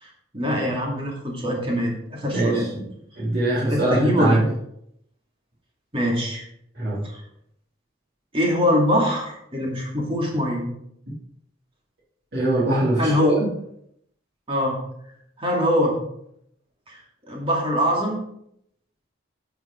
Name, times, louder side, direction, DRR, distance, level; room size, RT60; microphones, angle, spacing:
voice 1, 0.0-2.7 3.6-4.4 5.9-6.4 7.0-7.2 8.3-10.7 12.9-13.4 14.5-14.8 15.4-15.9 16.9-17.0 17.3-18.2, equal, 25° right, -2 dB, 2.5 m, -23 dB
voice 2, 2.3-2.6 3.2-4.5 6.8-7.0 12.3-13.5, right 1 dB, 55° right, -9 dB, 3.1 m, -22 dB
10.5 x 5.9 x 5.2 m, 0.73 s
head